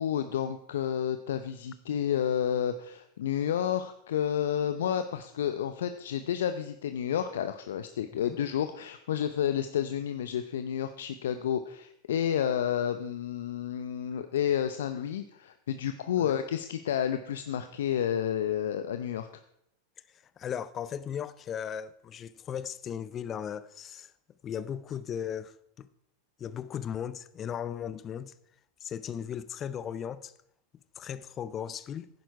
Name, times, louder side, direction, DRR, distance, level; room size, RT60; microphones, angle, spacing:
voice 1, 0.0-19.3, left 9 dB, 70° left, 0.6 m, -30 dB
voice 2, 20.4-24.1 24.4-25.9 26.4-28.3 28.8-30.3 31.0-32.1, left 8 dB, 30° left, 0.7 m, -37 dB
11.0 x 10.5 x 4.7 m
hypercardioid pair, 95°, 0 cm